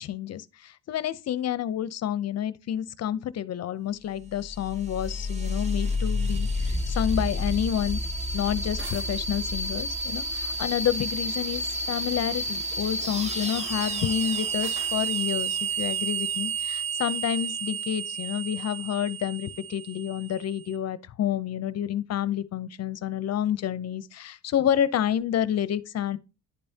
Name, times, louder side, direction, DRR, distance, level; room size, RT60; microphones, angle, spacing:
voice 1, 0.0-8.0 8.3-26.2, left 10 dB, 60° left, 0.6 m, -29 dB
sound 1, 4.2-20.6, right 1 dB, 20° right, 1.9 m, -30 dB
sound 2, 8.7-9.1 11.6-12.0 14.6-15.1, right 2 dB, 40° right, 3.1 m, -44 dB
11.0 x 5.4 x 2.7 m
cardioid pair, 90°, 30 cm